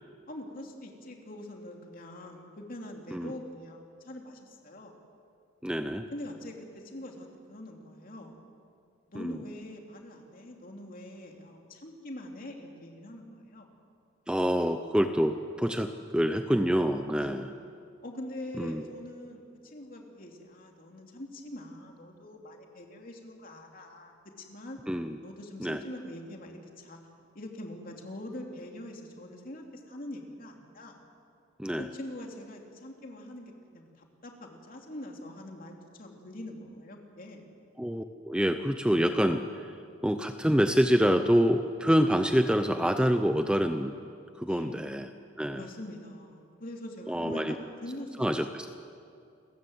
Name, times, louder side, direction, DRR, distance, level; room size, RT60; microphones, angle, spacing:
voice 1, 0.3-4.9 6.1-8.4 9.1-13.7 15.7-15.8 17.1-17.5 18.0-24.8 25.2-27.0 27.3-31.0 31.8-37.5 44.4-44.8 45.5-48.5, left 1 dB, 45° left, 1 dB, 2.8 m, -44 dB
voice 2, 5.6-6.1 9.1-9.4 14.3-17.5 18.6-18.8 24.9-25.2 25.6-25.8 31.6-31.9 37.8-39.7 40.0-43.9 44.4-45.1 45.4-45.7 47.1-47.5 48.2-48.7, equal, 5° right, 7 dB, 0.6 m, -26 dB
29.0 x 14.5 x 8.0 m, 2.4 s
head